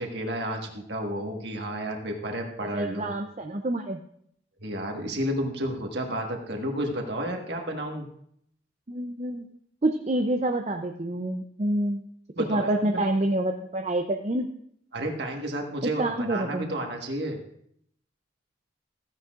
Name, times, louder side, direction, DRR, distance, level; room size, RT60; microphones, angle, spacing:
voice 1, 0.0-3.1 4.6-8.1 12.3-13.0 14.9-17.4, right 1 dB, 60° right, 2 dB, 1.6 m, -31 dB
voice 2, 2.7-4.0 8.9-9.5 9.8-12.0 12.5-14.5 16.0-16.7, right 1 dB, 35° right, 4 dB, 0.5 m, -27 dB
15.0 x 10.0 x 2.5 m, 0.69 s
head